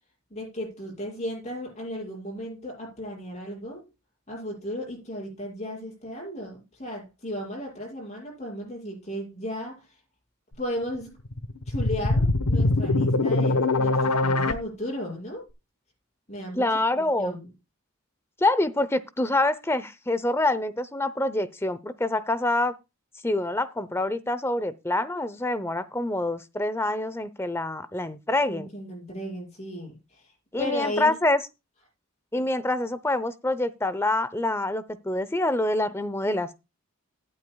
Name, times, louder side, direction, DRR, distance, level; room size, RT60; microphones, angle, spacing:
voice 1, 0.3-3.8 4.3-10.0 10.6-11.1 11.7-15.5 16.3-16.7 17.1-17.5 28.5-30.3 30.6-31.1 32.3-32.4, equal, 30° left, 6.3 m, -35 dB
sound 1, 11.3-14.5, left 2 dB, 90° left, 1.2 m, -23 dB
voice 2, 16.6-17.4 18.4-22.8 23.2-28.7 30.5-31.4 32.3-36.5, left 2 dB, 10° left, 0.7 m, -26 dB
17.0 x 8.8 x 2.3 m
head